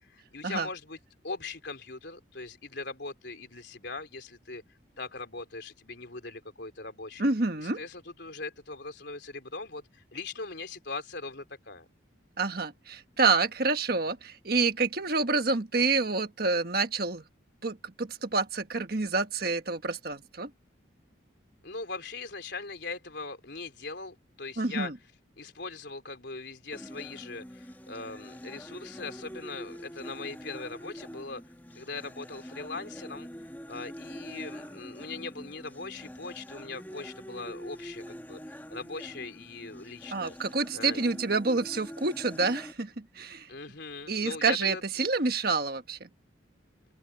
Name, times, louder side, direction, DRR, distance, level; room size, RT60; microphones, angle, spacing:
voice 1, 0.1-1.0 1.2-4.6 5.0-7.3 7.6-11.9 21.6-24.9 25.4-31.4 31.7-33.3 33.7-40.3 40.7-41.0 43.5-44.8, left 3 dB, 60° left, 3.9 m, -40 dB
voice 2, 7.2-7.8 12.4-17.2 17.6-20.5 24.6-24.9 40.1-43.5 44.1-46.1, right 4 dB, 50° right, 1.4 m, -28 dB
sound 1, 26.7-42.7, equal, 10° left, 2.0 m, -45 dB
open air
head